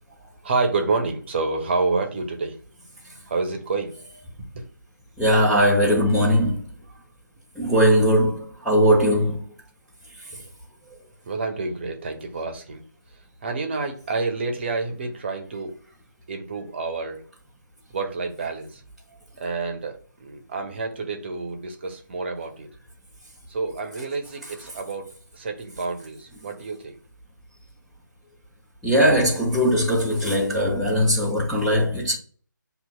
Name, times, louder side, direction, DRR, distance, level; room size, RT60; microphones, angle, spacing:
voice 1, 0.4-2.6 3.3-3.9 4.5-4.6 10.3-10.5 11.3-12.8 13.4-15.7 16.3-17.3 17.9-18.8 19.4-22.7 23.5-27.0, right 3 dB, 30° right, 0.8 m, -28 dB
voice 2, 5.2-6.6 7.6-9.4 28.8-32.2, equal, ahead, 0.4 m, -19 dB
7.6 x 2.8 x 2.2 m
figure-of-eight pair, 150°, 11 cm